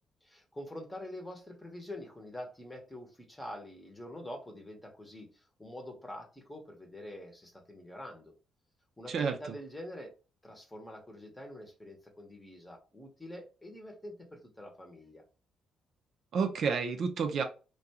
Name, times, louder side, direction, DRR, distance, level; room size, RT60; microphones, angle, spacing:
voice 1, 0.2-8.3 9.0-10.1 10.4-15.2, left 1 dB, 10° left, 2 dB, 0.8 m, -46 dB
voice 2, 9.1-9.6 16.3-17.4, right 5 dB, 60° right, 5 dB, 0.4 m, -30 dB
2.4 x 2.2 x 2.8 m, 0.34 s
cardioid pair, 90°, 0 cm